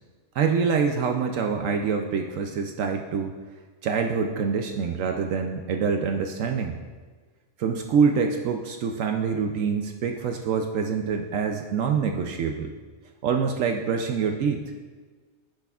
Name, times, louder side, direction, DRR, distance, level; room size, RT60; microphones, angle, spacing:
voice 1, 0.3-3.3 3.8-6.8 7.6-12.7 13.2-14.6, right 6 dB, 75° right, 4 dB, 0.9 m, -25 dB
10.5 x 8.0 x 2.4 m, 1.4 s
omnidirectional pair, 1.4 m